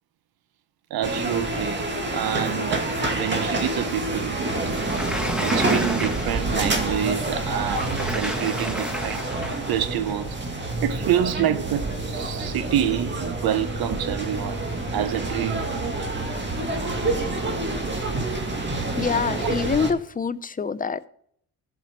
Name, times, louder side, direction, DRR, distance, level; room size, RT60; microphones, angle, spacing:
voice 1, 0.9-1.9 2.1-4.5 5.4-9.3 9.7-10.4 10.8-14.6 14.9-15.7 16.1-16.2 19.4-19.5, right 10 dB, 75° right, 0.9 m, -27 dB
sound 1, 1.0-19.9, right 2 dB, 30° right, 2.1 m, -27 dB
Sliding door, 4.7-6.6 7.6-9.7, equal, ahead, 1.5 m, -32 dB
voice 2, 19.0-21.1, left 5 dB, 25° left, 0.6 m, -25 dB
15.0 x 5.9 x 4.5 m
cardioid pair, 85°, 36 cm